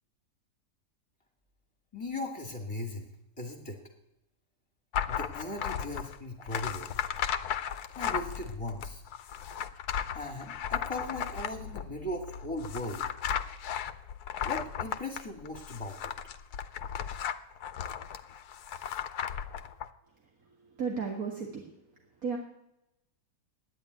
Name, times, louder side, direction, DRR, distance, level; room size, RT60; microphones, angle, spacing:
voice 1, 1.9-3.1 3.4-3.8 5.1-6.9 7.9-9.0 10.1-13.1 14.4-16.1, left 1 dB, 20° left, 2 dB, 1.9 m, -38 dB
sound 1, 4.9-19.9, left 9 dB, 70° left, 1.3 m, -35 dB
voice 2, 20.8-21.7 22.2-22.4, right 5 dB, 60° right, 0 dB, 2.1 m, -33 dB
12.5 x 9.7 x 9.2 m, 0.87 s
omnidirectional pair, 1.7 m